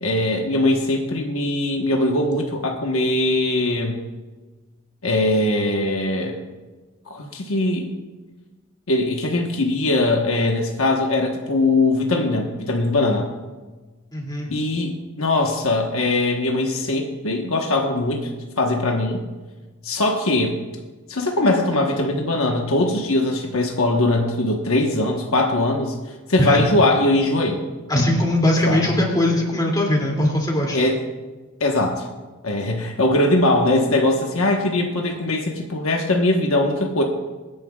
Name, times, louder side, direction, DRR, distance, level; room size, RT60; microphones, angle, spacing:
voice 1, 0.0-4.0 5.0-6.4 7.1-7.9 8.9-13.3 14.5-18.3 18.6-19.2 19.8-20.6 21.1-26.0 26.3-27.6 28.7-28.9 30.7-31.0 31.6-32.1 32.4-37.0, left 2 dB, 65° left, 1 dB, 1.2 m, -21 dB
voice 2, 14.1-14.5 26.4-26.6 27.9-30.8, left 1 dB, 20° left, -1 dB, 2.6 m, -20 dB
25.0 x 10.0 x 2.4 m, 1.3 s
head